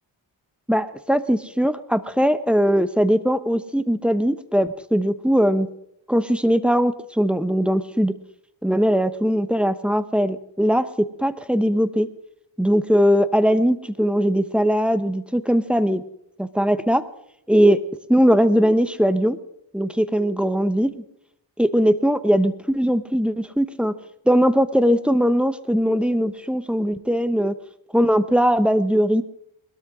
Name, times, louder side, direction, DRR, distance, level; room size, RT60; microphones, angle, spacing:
voice 1, 0.7-5.7 6.1-8.1 8.6-12.1 12.6-16.0 16.4-17.0 17.5-17.8 18.1-19.4 19.7-21.0 21.6-23.9 24.3-27.5 27.9-29.2, equal, ahead, 12 dB, 1.0 m, -20 dB
21.0 x 13.0 x 3.7 m, 0.74 s
cardioid pair, 60°, 47 cm